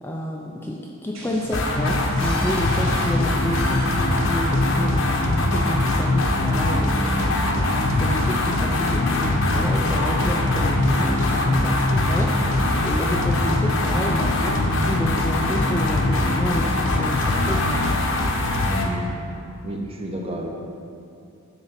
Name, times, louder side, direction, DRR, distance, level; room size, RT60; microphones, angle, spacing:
voice 1, 0.0-7.2 7.6-12.4 12.8-17.9, left 1 dB, 10° left, -2 dB, 0.5 m, -29 dB
sound 1, 1.1-6.6, right 1 dB, 65° right, 2.3 m, -40 dB
sound 2, 1.5-18.9, left 2 dB, 60° left, 0.9 m, -21 dB
voice 2, 18.6-19.1 19.6-20.5, equal, 25° right, 0 dB, 1.0 m, -30 dB
10.0 x 3.8 x 7.3 m, 2.6 s
head